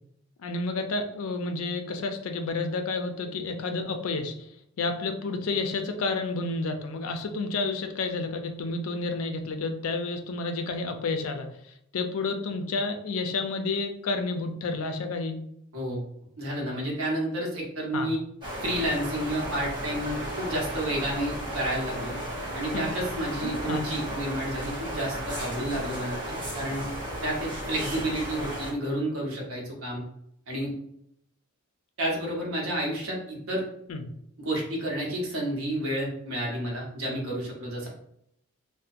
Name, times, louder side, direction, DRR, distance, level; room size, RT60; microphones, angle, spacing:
voice 1, 0.4-4.5 4.8-11.5 11.9-15.4 17.9-18.1 22.7-22.9 23.4-23.8 33.9-34.0, left 3 dB, 80° left, 6 dB, 0.4 m, -30 dB
voice 2, 15.7-16.0 16.4-18.2 18.6-22.2 22.5-26.9 27.2-30.0 30.5-30.7 32.0-33.6 34.4-37.9, right 1 dB, 85° right, -2 dB, 0.8 m, -30 dB
sound 1, 18.4-28.7, equal, 20° right, 0.6 m, -34 dB
2.7 x 2.1 x 2.4 m, 0.74 s
head